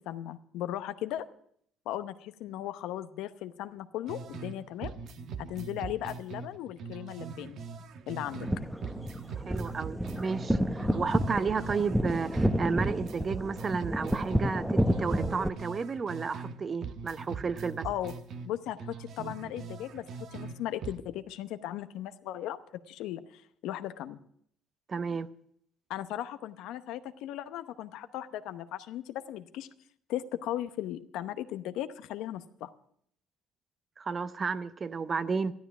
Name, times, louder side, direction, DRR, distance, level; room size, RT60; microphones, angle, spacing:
voice 1, 0.1-1.3 1.9-4.9 5.4-7.6 8.1-8.5 17.8-18.1 18.4-22.6 22.9-24.2 25.9-29.7 30.1-32.7, left 12 dB, 75° left, 0.8 m, -37 dB
sound 1, 4.1-4.6 4.8-8.6 8.8-12.6 12.8-16.6 16.8-20.6 20.8-21.0, right 5 dB, 65° right, 1.2 m, -42 dB
sound 2, 8.3-15.5, equal, 5° right, 1.0 m, -30 dB
voice 2, 9.5-17.9 24.9-25.3 34.0-35.5, right 5 dB, 40° right, 0.8 m, -32 dB
13.0 x 12.5 x 6.0 m
hypercardioid pair, 65°, 0 cm